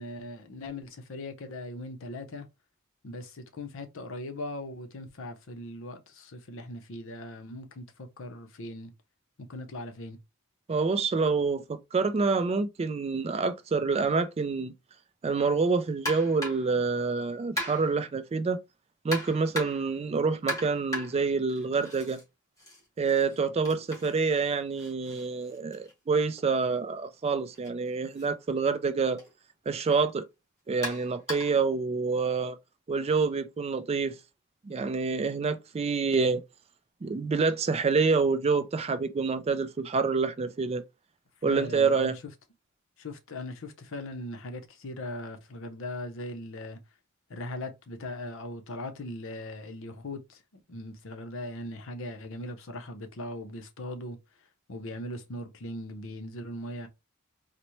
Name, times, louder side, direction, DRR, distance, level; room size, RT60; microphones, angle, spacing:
voice 1, 0.0-2.5 3.0-8.9 9.5-10.2 41.5-42.1 43.0-46.8 47.3-54.2 54.7-56.9, left 1 dB, 65° left, 0.7 m, -39 dB
voice 2, 10.7-14.7 15.2-18.6 19.0-22.2 23.0-29.2 29.7-30.3 30.7-32.6 32.9-34.2 34.6-36.4 37.0-40.8 41.4-42.2, right 4 dB, 30° right, 0.3 m, -27 dB
sound 1, 16.1-16.7 17.6-18.1 19.1-19.9 20.5-22.2 22.6-26.4 27.5-27.7 28.1-28.3 29.2-29.3 30.8-31.7, equal, 15° left, 1.4 m, -38 dB
4.0 x 2.1 x 3.1 m
head